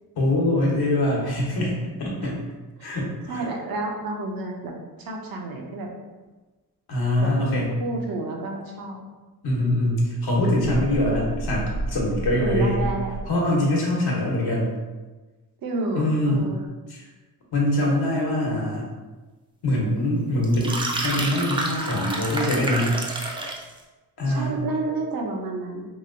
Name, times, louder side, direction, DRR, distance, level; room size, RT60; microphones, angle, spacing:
voice 1, 0.2-2.4 2.8-3.5 6.9-7.8 9.4-12.8 13.3-14.7 15.9-16.5 16.9-17.1 17.5-18.9 19.6-23.0 24.2-24.5, left 1 dB, 70° left, -3 dB, 1.0 m, -23 dB
voice 2, 3.3-5.9 7.2-7.3 7.8-9.0 12.4-13.1 15.6-16.6 24.3-25.9, right 2 dB, 60° right, 2 dB, 0.7 m, -30 dB
sound 1, 10.6-13.4, right 2 dB, 45° left, 0.7 m, -31 dB
sound 2, 20.4-23.7, right 2 dB, 15° right, 0.4 m, -29 dB
3.0 x 2.7 x 2.6 m, 1.2 s
cardioid pair, 85°, 40 cm